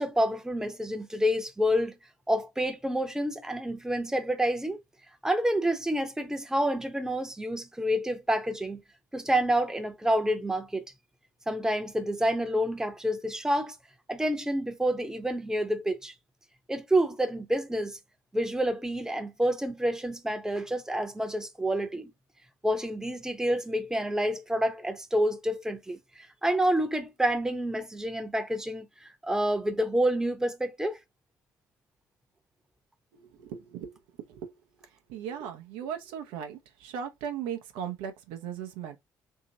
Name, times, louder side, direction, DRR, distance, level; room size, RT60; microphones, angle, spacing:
voice 1, 0.0-2.0 2.3-4.8 5.2-8.8 9.1-10.8 11.5-13.8 14.1-16.1 16.7-18.0 18.3-22.1 22.6-26.0 26.4-28.9 29.2-31.0, equal, 5° right, 0.8 m, -28 dB
voice 2, 33.1-34.5 34.8-39.0, right 8 dB, 65° right, 0.6 m, -38 dB
2.8 x 2.8 x 2.8 m
figure-of-eight pair, 50°, 10 cm